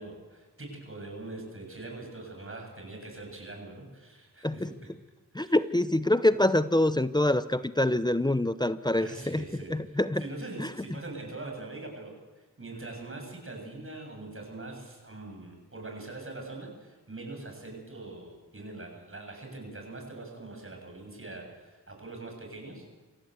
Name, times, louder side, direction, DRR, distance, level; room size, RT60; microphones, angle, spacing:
voice 1, 0.0-4.9 5.4-5.6 8.9-22.9, right 2 dB, 35° right, 2 dB, 8.0 m, -43 dB
voice 2, 5.3-9.4 9.7-10.2 10.6-10.7, left 1 dB, 10° left, 13 dB, 0.8 m, -25 dB
26.5 x 15.5 x 8.1 m, 1.3 s
wide cardioid pair, 70°, 35 cm